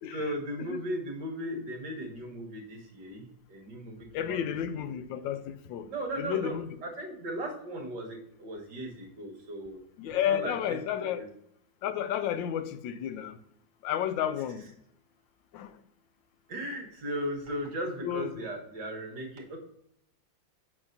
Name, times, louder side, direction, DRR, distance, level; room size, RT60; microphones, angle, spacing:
voice 1, 0.1-4.4 4.8-4.9 5.9-9.8 10.3-11.3 16.5-19.6, right 1 dB, 65° right, 2.0 m, -37 dB
voice 2, 4.1-5.9 6.2-6.7 10.0-11.2 11.8-13.4 13.8-14.6 15.5-15.7 18.0-18.4, left 10 dB, 80° left, 1.3 m, -31 dB
7.9 x 5.8 x 2.6 m
omnidirectional pair, 2.1 m